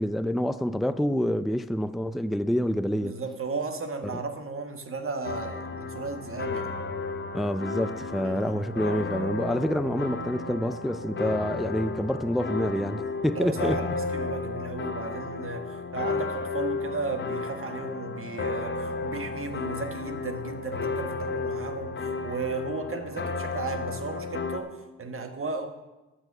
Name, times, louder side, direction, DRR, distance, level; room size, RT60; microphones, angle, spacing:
voice 1, 0.0-3.2 4.1-4.2 7.3-13.7, equal, ahead, 0.4 m, -27 dB
voice 2, 3.0-6.7 8.2-8.6 13.3-25.7, right 3 dB, 45° right, 1.4 m, -35 dB
sound 1, 5.2-24.6, left 4 dB, 35° left, 1.0 m, -33 dB
10.0 x 7.6 x 5.9 m
supercardioid pair, 55°, 31 cm